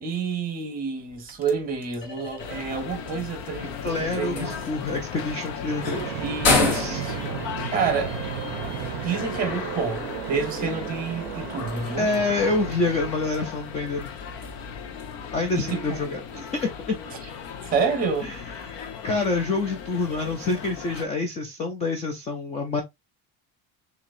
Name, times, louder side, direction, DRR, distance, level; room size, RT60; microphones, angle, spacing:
voice 1, 0.0-4.6 6.2-7.2 7.7-8.5 9.0-12.1 15.5-16.0 16.3-16.4 17.7-18.3, right 5 dB, 20° right, 1.3 m, -29 dB
porch door lock, 1.0-20.5, left 3 dB, 45° left, 1.5 m, -35 dB
sound 1, 2.4-21.1, left 6 dB, 80° left, 1.1 m, -36 dB
voice 2, 3.8-6.2 6.5-7.0 12.0-14.1 15.3-16.2 16.6-17.0 18.2-18.8 19.0-22.8, left 3 dB, 20° left, 0.3 m, -27 dB
Fixed-wing aircraft airplane, 5.7-12.8, right 13 dB, 50° right, 0.6 m, -34 dB
7.1 x 2.8 x 2.5 m
cardioid pair, 180°, 40 cm